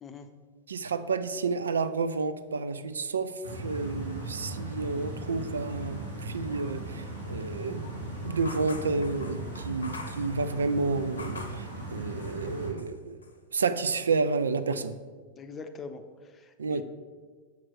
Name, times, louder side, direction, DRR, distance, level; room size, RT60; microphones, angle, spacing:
voice 1, 0.7-7.9 8.2-13.2 13.5-14.8 16.6-16.8, right 4 dB, 70° right, 11 dB, 0.4 m, -30 dB
sound 1, 3.4-12.7, right 1 dB, 90° right, 1.5 m, -38 dB
sound 2, 8.4-11.7 12.2-13.0 13.2-14.3, left 3 dB, 75° left, 0.7 m, -45 dB
voice 2, 15.4-16.8, left 5 dB, 25° left, 8 dB, 0.6 m, -43 dB
7.2 x 4.5 x 5.9 m, 1.5 s
figure-of-eight pair, 90°, 0 cm